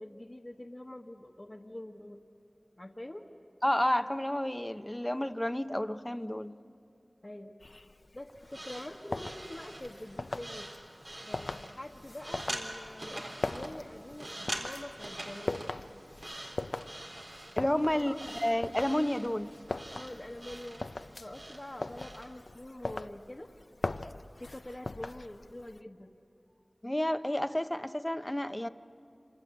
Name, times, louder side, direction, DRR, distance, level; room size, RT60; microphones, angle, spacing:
voice 1, 0.0-2.2 2.8-3.2 7.2-7.8 8.1-10.7 11.3-15.7 17.9-18.2 19.9-20.8 21.2-23.5 24.4-26.1, left 1 dB, 35° left, -2 dB, 1.4 m, -45 dB
voice 2, 3.6-6.5 17.6-19.5 26.8-28.7, left 1 dB, 20° left, 10 dB, 0.8 m, -30 dB
sound 1, 7.6-25.8, left 2 dB, 80° left, 0.6 m, -41 dB
sound 2, 8.4-22.3, right 1 dB, 70° right, 4.0 m, -45 dB
27.0 x 26.5 x 8.2 m, 2.5 s
wide cardioid pair, 45°, 0 cm